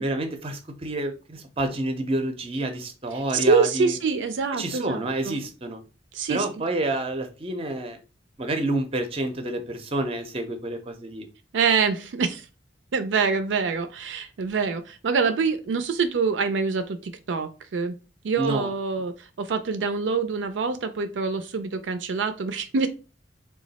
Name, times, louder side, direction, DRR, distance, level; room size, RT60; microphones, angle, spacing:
voice 1, 0.0-4.0 4.6-5.8 6.3-8.0 8.4-11.3 18.4-18.7, right 1 dB, 30° right, 0.5 m, -29 dB
voice 2, 3.1-5.4 6.1-6.4 11.5-12.5 12.9-17.9 18.2-22.9, right 5 dB, 80° right, 0.4 m, -25 dB
3.0 x 2.3 x 4.0 m
head